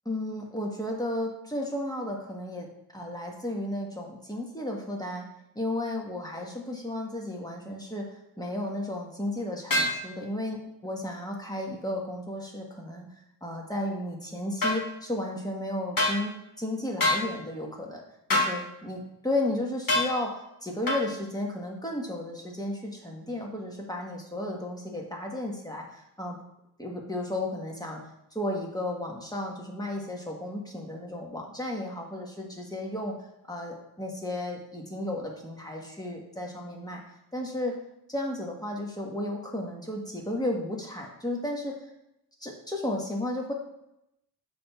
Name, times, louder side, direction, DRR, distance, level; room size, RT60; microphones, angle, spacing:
voice 1, 0.0-5.3 5.5-8.1 8.4-13.1 13.4-18.0 18.5-20.3 20.6-26.4 26.8-28.0 28.3-33.1 33.4-37.0 37.3-37.7 38.1-41.7 42.4-43.5, left 1 dB, 10° left, 0 dB, 1.4 m, -33 dB
sound 1, 9.7-10.0 14.6-14.8 16.0-16.2 17.0-17.2 18.3-18.5 19.9-20.1 20.9-21.0, left 2 dB, 55° left, 1.6 m, -24 dB
6.8 x 3.5 x 5.5 m, 0.84 s
wide cardioid pair, 85°, 39 cm